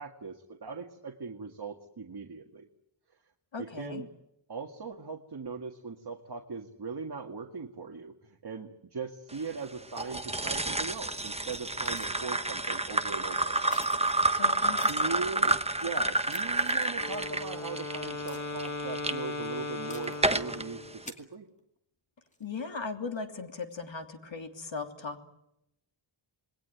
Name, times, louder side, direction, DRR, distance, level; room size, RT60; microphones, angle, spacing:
voice 1, 0.0-2.7 3.6-4.1 4.5-13.7 14.7-21.5, right 4 dB, 50° right, 3 dB, 2.0 m, -40 dB
voice 2, 3.5-4.0 14.4-14.9 15.3-15.6 22.4-25.3, left 4 dB, 65° left, 5 dB, 3.1 m, -38 dB
sound 1, 10.0-19.1 19.7-20.6, right 2 dB, 10° right, 1.0 m, -29 dB
sound 2, 11.0-12.6 13.0-13.1 13.5-15.9 16.3-17.2 17.5-17.6 18.3-18.9 19.9-20.4 20.8-21.6 22.3-22.6, left 1 dB, 15° left, 2.3 m, -50 dB
Wind instrument woodwind instrument, 16.9-21.1, left 3 dB, 35° left, 1.5 m, -38 dB
27.5 x 20.5 x 9.2 m, 0.83 s
wide cardioid pair, 110°, 50 cm